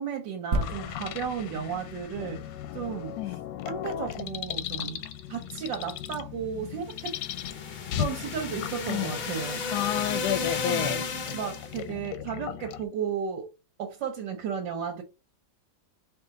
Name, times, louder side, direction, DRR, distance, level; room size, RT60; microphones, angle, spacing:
voice 1, 0.0-3.3 3.6-7.2 8.0-9.6 10.6-11.0 11.3-13.5 13.8-15.0, right 7 dB, 85° right, 1.5 m, -34 dB
sound 1, 0.5-4.1 4.7-4.8, right 2 dB, 50° right, 0.9 m, -35 dB
sound 2, 0.6-12.9, left 11 dB, 90° left, 1.3 m, -38 dB
sound 3, 6.8-11.8, left 4 dB, 55° left, 0.6 m, -33 dB
voice 2, 9.7-11.0, left 13 dB, 75° left, 1.0 m, -29 dB
4.9 x 2.7 x 3.7 m
omnidirectional pair, 1.9 m